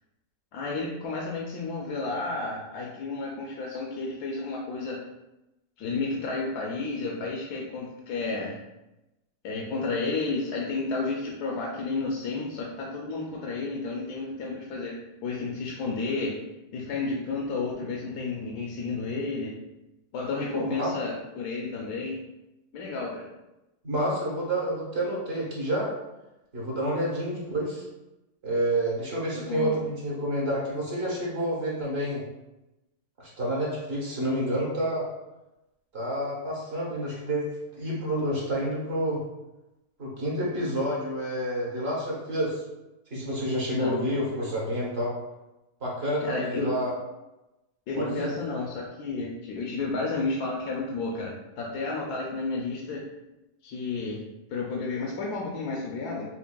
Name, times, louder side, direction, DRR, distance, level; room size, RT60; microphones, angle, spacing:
voice 1, 0.5-5.0 5.8-8.6 9.4-14.9 15.2-16.3 16.7-19.5 20.1-22.2 22.7-23.3 29.3-29.7 43.7-44.0 46.2-46.7 47.9-53.0 53.6-54.2 54.5-56.3, left 3 dB, 75° left, -2 dB, 1.1 m, -31 dB
voice 2, 20.5-20.9 23.8-25.9 26.5-27.8 28.4-32.2 33.2-35.1 35.9-37.5 37.8-39.2 40.0-42.6 43.1-45.1 45.8-46.9 48.0-48.3, equal, 45° right, -5 dB, 1.2 m, -29 dB
5.8 x 2.2 x 2.2 m, 0.97 s
omnidirectional pair, 1.7 m